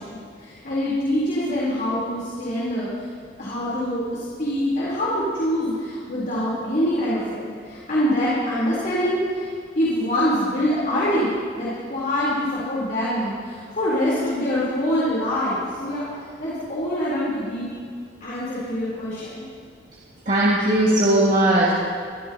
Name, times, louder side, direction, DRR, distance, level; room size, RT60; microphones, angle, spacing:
voice 1, 0.0-2.9 3.4-9.5 9.8-16.0 16.4-17.7 18.2-19.4, equal, 50° left, -9 dB, 4.0 m, -24 dB
voice 2, 20.3-21.7, right 1 dB, 45° right, -8 dB, 2.2 m, -18 dB
24.0 x 14.5 x 3.0 m, 2.1 s
head